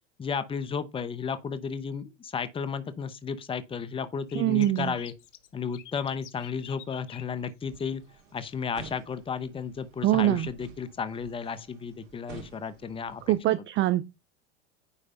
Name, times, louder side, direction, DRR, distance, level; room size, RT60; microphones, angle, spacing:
voice 1, 0.2-5.1 5.5-8.0 8.3-13.3, left 6 dB, 15° left, 0.9 m, -33 dB
sound 1, 4.3-8.5 8.8-9.1 9.6-9.7 10.9-11.0 11.4-11.5 12.7-12.8 13.4-13.5, left 11 dB, 85° left, 1.1 m, -49 dB
voice 2, 4.3-5.0 10.0-10.5 13.3-14.1, right 14 dB, 35° right, 0.5 m, -24 dB
sound 2, 7.7-13.4, right 5 dB, 65° right, 2.6 m, -50 dB
9.8 x 3.3 x 5.2 m
hypercardioid pair, 110°, 35 cm